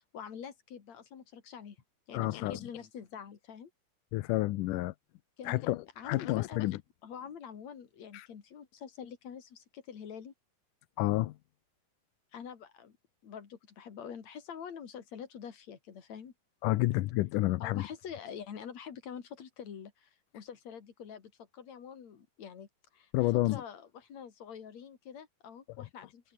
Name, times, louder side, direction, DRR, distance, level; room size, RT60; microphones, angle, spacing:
voice 1, 0.0-1.8 2.1-3.7 5.4-5.6 6.0-6.8 7.0-10.3 12.3-12.9 13.2-16.3 17.6-22.7 22.9-23.1 23.5-26.3, left 7 dB, 45° left, 3.6 m, -46 dB
voice 2, 2.1-2.6 4.1-4.9 5.5-6.8 8.1-8.3 11.0-11.3 16.6-17.8 23.1-23.6, left 17 dB, 80° left, 1.9 m, -29 dB
omnidirectional pair, 4.5 m